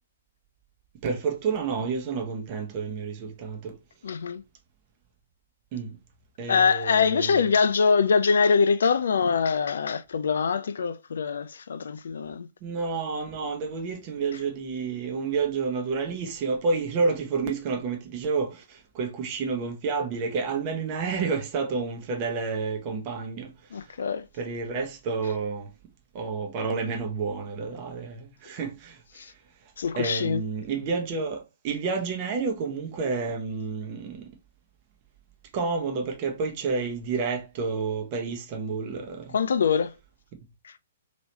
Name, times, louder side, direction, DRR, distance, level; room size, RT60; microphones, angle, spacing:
voice 1, 1.0-3.7 5.7-5.9 6.4-7.5 12.6-18.6 19.0-23.5 24.4-25.7 26.1-28.9 30.0-34.2 35.5-39.3, right 4 dB, 35° right, 0.8 m, -29 dB
voice 2, 4.0-4.4 6.5-12.5 23.7-24.2 29.2-29.3 29.8-30.4 39.3-39.9, left 5 dB, 60° left, 0.3 m, -23 dB
3.0 x 3.0 x 2.9 m
figure-of-eight pair, 120°, 0 cm